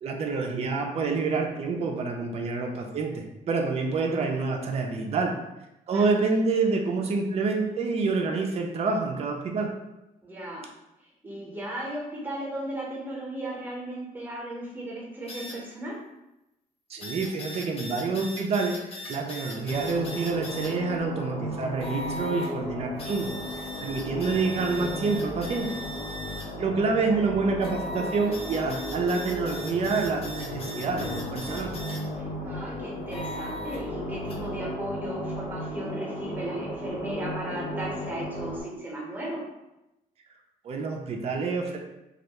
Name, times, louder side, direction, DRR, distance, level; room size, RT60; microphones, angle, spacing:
voice 1, 0.0-5.3 5.9-9.7 16.9-18.7 19.1-25.8 26.6-31.7 40.6-41.8, right 4 dB, 45° right, 2 dB, 0.4 m, -27 dB
voice 2, 10.2-10.6 11.2-16.0 32.2-39.4, right 1 dB, 10° right, -3 dB, 0.8 m, -36 dB
sound 1, 15.3-15.5 17.0-20.7 21.8-22.5 23.0-26.5 27.6-32.0 33.1-33.8 34.3-34.4, left 1 dB, 40° left, 0.6 m, -39 dB
sound 2, 19.7-38.6, equal, 70° left, 1.0 m, -35 dB
2.3 x 2.1 x 2.8 m, 0.93 s
cardioid pair, 115°, 15 cm